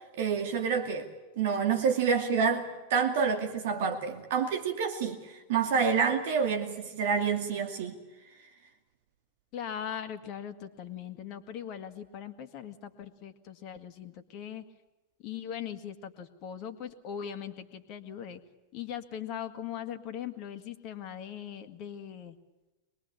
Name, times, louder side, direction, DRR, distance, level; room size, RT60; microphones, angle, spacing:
voice 1, 0.1-1.1 1.4-8.0, right 6 dB, 55° right, 5 dB, 2.4 m, -28 dB
voice 2, 9.5-14.6 15.2-18.4 18.7-22.3, left 9 dB, 40° left, 8 dB, 1.9 m, -40 dB
24.0 x 21.5 x 8.5 m, 1.1 s
figure-of-eight pair, 90°, 0 cm